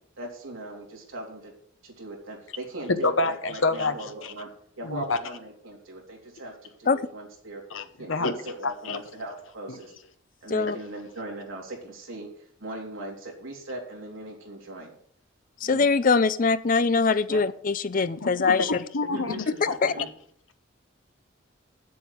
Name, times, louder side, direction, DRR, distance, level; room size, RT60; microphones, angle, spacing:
voice 1, 0.2-1.5 1.8-4.5 4.8-7.6 8.0-9.9 10.4-12.3 12.6-14.9 15.6-15.9 17.3-17.4 19.1-20.1, right 1 dB, 75° right, 0 dB, 3.5 m, -39 dB
voice 2, 2.9-4.0 4.2-4.3 4.8-5.2 7.7-8.3 8.6-9.0 9.7-9.8 18.2-20.1, left 3 dB, 70° left, 9 dB, 1.0 m, -28 dB
voice 3, 15.6-18.7 19.8-19.9, left 4 dB, 40° left, 15 dB, 0.5 m, -22 dB
7.7 x 7.2 x 8.2 m, 0.63 s
head